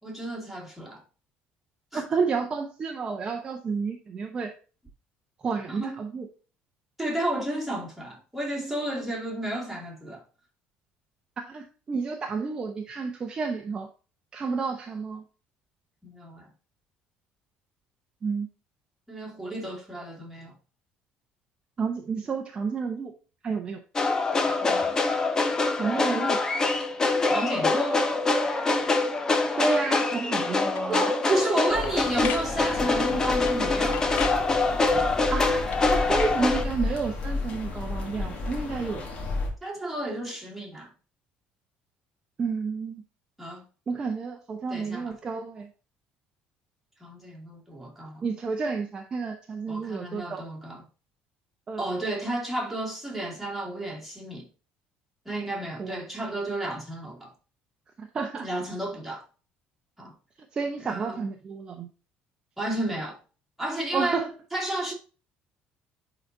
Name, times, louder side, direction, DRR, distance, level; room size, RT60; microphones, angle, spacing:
voice 1, 0.0-1.0 1.9-2.0 5.7-6.0 7.0-10.2 16.0-16.5 19.1-20.5 24.5-25.0 27.2-28.1 30.9-34.1 39.6-40.9 43.4-43.6 44.7-45.1 47.0-48.2 49.7-50.8 51.8-54.5 55.3-57.3 58.4-59.3 60.0-60.1 60.8-61.2 62.6-63.2 63.6-64.2 64.5-64.9, right 1 dB, ahead, 2.3 m, -32 dB
voice 2, 1.9-4.5 5.4-6.3 11.4-13.9 14.3-15.2 18.2-18.5 21.8-23.1 23.4-23.8 25.8-26.4 29.6-31.0 31.3-31.5 35.3-39.2 42.4-43.0 43.9-45.7 48.2-50.4 51.7-51.8 55.8-56.0 58.0-58.5 60.5-61.9 63.9-64.3, right 4 dB, 25° right, 0.8 m, -30 dB
sound 1, 24.0-36.6, left 3 dB, 15° left, 0.7 m, -25 dB
sound 2, 30.7-30.9 31.3-31.5 31.8-32.5 33.5-33.6 33.9-34.5 35.7-36.1, left 10 dB, 55° left, 0.6 m, -36 dB
sound 3, 31.7-39.5, left 3 dB, 35° left, 1.8 m, -33 dB
10.5 x 4.0 x 2.6 m
cardioid pair, 155°, 4 cm